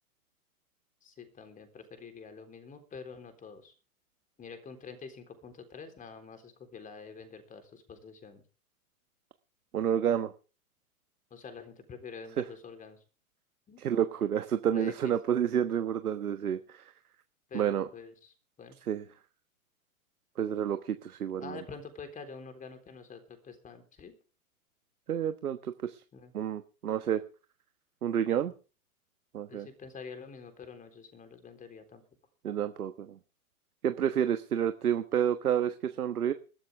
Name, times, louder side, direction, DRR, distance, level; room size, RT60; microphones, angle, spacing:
voice 1, 1.0-3.7 4.4-8.4 11.3-13.0 13.7-13.8 14.7-15.1 17.5-18.8 21.4-24.1 26.1-26.3 29.5-32.0, left 5 dB, 15° left, 8 dB, 3.7 m, -47 dB
voice 2, 9.7-10.3 13.8-16.8 17.5-17.9 18.9-19.0 20.4-21.6 25.1-26.0 26.3-27.2 28.0-28.5 29.3-29.7 32.4-33.1 33.8-36.3, right 9 dB, 75° right, 10 dB, 1.3 m, -29 dB
21.0 x 13.0 x 3.5 m, 0.36 s
hypercardioid pair, 115°, 44 cm